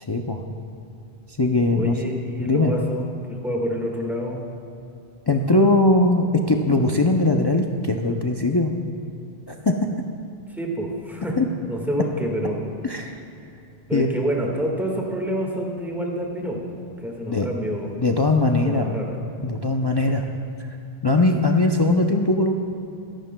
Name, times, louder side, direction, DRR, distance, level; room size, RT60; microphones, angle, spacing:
voice 1, 0.1-0.4 1.4-1.9 2.4-2.7 5.3-8.7 9.5-9.7 11.4-11.5 12.8-13.1 13.9-14.1 17.3-17.5 18.0-18.9 19.4-20.3 21.0-22.5, left 2 dB, 35° left, 2 dB, 0.5 m, -20 dB
voice 2, 1.7-4.4 10.5-11.4 11.6-12.7 13.9-16.6 17.0-17.9 18.4-19.2, equal, ahead, -1 dB, 1.6 m, -28 dB
23.0 x 11.5 x 2.2 m, 2.6 s
omnidirectional pair, 1.1 m